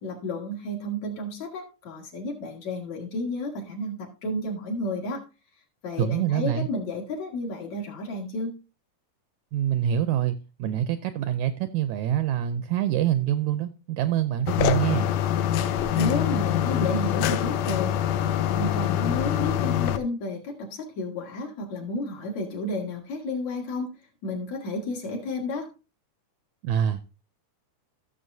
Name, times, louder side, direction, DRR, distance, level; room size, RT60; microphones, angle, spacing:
voice 1, 0.0-5.2 5.8-8.6 15.9-17.9 18.2-23.9 24.2-25.7, left 2 dB, 60° left, 0 dB, 3.1 m, -32 dB
voice 2, 6.0-6.7 9.5-15.2 26.6-27.0, right 10 dB, 80° right, 11 dB, 1.7 m, -25 dB
sound 1, 14.5-20.0, left 10 dB, 80° left, 1.6 m, -25 dB
15.5 x 6.9 x 2.6 m, 0.29 s
omnidirectional pair, 3.8 m